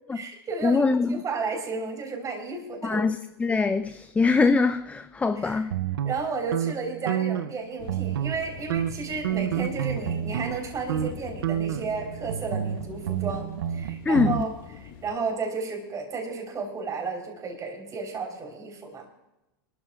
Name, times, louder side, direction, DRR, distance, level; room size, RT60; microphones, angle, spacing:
voice 1, 0.1-3.0 5.3-5.7 6.0-19.1, right 4 dB, 25° right, 3.8 m, -33 dB
voice 2, 0.6-1.2 2.8-3.2 3.4-5.7 14.1-14.4, left 4 dB, 10° left, 0.5 m, -23 dB
sound 1, 5.7-7.6 7.8-8.4 8.7-10.6 10.9-11.1 11.4-14.4, right 10 dB, 80° right, 0.6 m, -29 dB
sound 2, 7.8-15.1, left 6 dB, 60° left, 2.1 m, -43 dB
25.0 x 13.5 x 2.4 m
hypercardioid pair, 110°, 12 cm